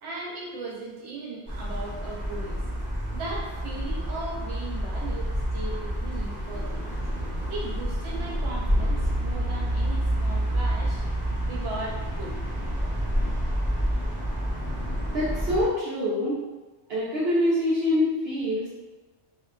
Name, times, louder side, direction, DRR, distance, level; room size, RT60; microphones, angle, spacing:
voice 1, 0.0-2.6 3.1-7.0 7.5-11.0 11.4-12.3, right 2 dB, 90° right, -4 dB, 1.0 m, -37 dB
sound 1, 1.5-15.7, equal, 10° left, 0.9 m, -28 dB
voice 2, 15.1-16.4 16.9-18.7, left 1 dB, 65° right, -8 dB, 0.8 m, -25 dB
2.7 x 2.3 x 2.2 m, 1.2 s
omnidirectional pair, 1.2 m